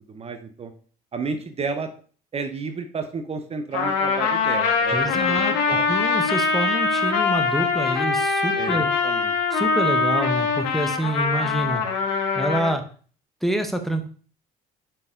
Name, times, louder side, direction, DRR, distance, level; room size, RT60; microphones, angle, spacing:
voice 1, 0.1-0.7 1.1-1.9 2.3-5.2 5.5-5.8 8.6-9.3, right 4 dB, 35° right, 7 dB, 0.8 m, -31 dB
Trumpet, 3.7-12.7, left 4 dB, 75° left, 1.4 m, -23 dB
voice 2, 4.9-8.9 9.5-11.8 12.3-12.8 13.4-14.1, right 1 dB, ahead, 6 dB, 1.0 m, -27 dB
5.4 x 4.5 x 3.8 m, 0.42 s
supercardioid pair, 75°, 18 cm